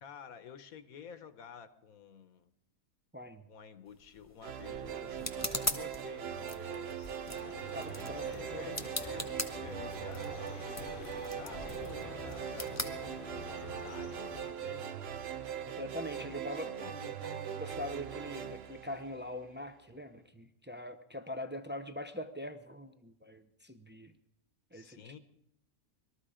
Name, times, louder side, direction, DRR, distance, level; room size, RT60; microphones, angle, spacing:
voice 1, 0.0-2.5 3.5-7.4 8.2-9.3 9.6-10.6 11.2-14.3 14.6-14.9 16.2-17.4 24.7-25.2, left 7 dB, 75° left, 11 dB, 1.3 m, -51 dB
sound 1, 3.9-13.7, left 1 dB, 10° left, 1.1 m, -42 dB
sound 2, 4.4-19.7, right 9 dB, 55° right, 0.8 m, -41 dB
sound 3, 7.3-14.5, left 6 dB, 40° left, 0.9 m, -48 dB
voice 2, 7.7-8.8 15.8-16.7 17.6-24.1 24.7-25.1, left 1 dB, 15° right, 7 dB, 0.4 m, -42 dB
21.0 x 13.5 x 5.0 m, 0.77 s
omnidirectional pair, 1.5 m